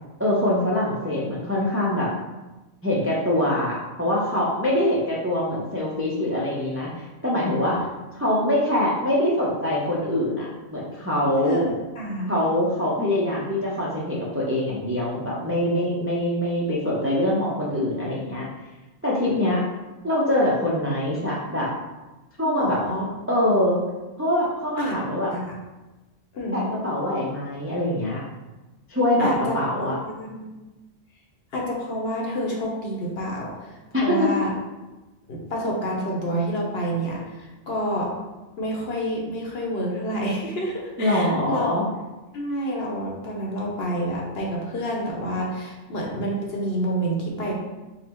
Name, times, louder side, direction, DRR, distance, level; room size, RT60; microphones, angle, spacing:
voice 1, 0.2-2.1 2.8-6.9 7.2-7.9 8.1-11.6 12.3-18.5 19.0-19.6 20.0-21.7 22.4-22.8 23.3-23.8 24.2-25.3 26.5-28.2 28.9-30.0 33.9-34.3 41.0-41.8, left 1 dB, 20° right, -6 dB, 0.4 m, -24 dB
voice 2, 11.4-11.7 12.0-12.3 19.3-19.6 22.4-23.1 24.8-25.0 25.3-25.5 26.3-26.7 29.2-30.5 31.5-34.5 35.3-38.1 38.6-41.7 42.3-47.5, equal, 55° left, -2 dB, 1.0 m, -28 dB
4.0 x 2.0 x 4.3 m, 1.1 s
omnidirectional pair, 1.3 m